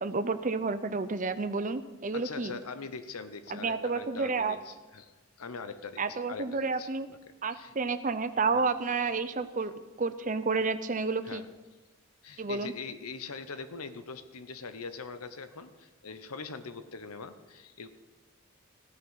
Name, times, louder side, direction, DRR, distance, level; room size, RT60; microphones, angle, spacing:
voice 1, 0.0-2.6 3.5-4.6 6.0-7.1 7.4-9.7 10.0-11.4 12.4-12.7, right 4 dB, 35° right, 12 dB, 0.6 m, -30 dB
voice 2, 2.1-7.7 8.5-8.7 11.2-11.5 12.2-17.9, left 4 dB, 90° left, 11 dB, 0.9 m, -42 dB
15.0 x 9.4 x 5.7 m, 1.2 s
head